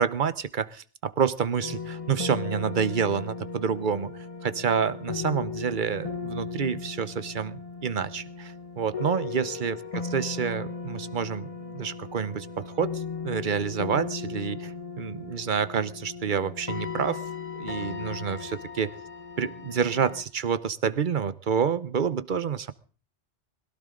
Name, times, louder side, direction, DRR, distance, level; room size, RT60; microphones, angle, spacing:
voice 1, 0.0-9.8 10.1-17.2 17.5-18.9 19.4-22.7, right 7 dB, 50° right, 15 dB, 1.0 m, -28 dB
sound 1, 1.6-20.2, left 5 dB, 30° left, 1.4 m, -37 dB
21.5 x 16.5 x 3.8 m, 0.41 s
omnidirectional pair, 1.2 m